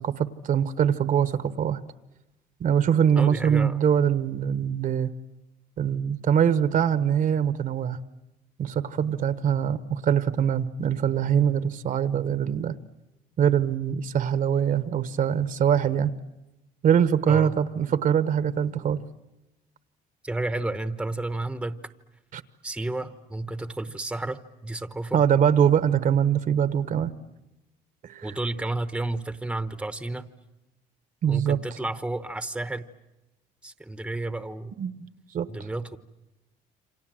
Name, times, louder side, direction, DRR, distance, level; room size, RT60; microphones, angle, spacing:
voice 1, 0.0-1.8 2.6-5.1 5.8-8.0 8.6-12.7 13.4-16.1 16.8-19.0 22.3-22.4 25.1-27.1 28.0-28.4 31.2-31.6 34.8-34.9 35.3-35.5, right 8 dB, 50° right, 13 dB, 1.1 m, -23 dB
voice 2, 3.2-3.8 17.3-17.5 20.2-21.8 22.6-25.2 28.2-30.3 31.3-32.8 33.6-34.7 35.5-36.0, right 2 dB, 5° right, 11 dB, 1.0 m, -31 dB
28.5 x 26.0 x 7.7 m, 0.96 s
cardioid pair, 110°, 17 cm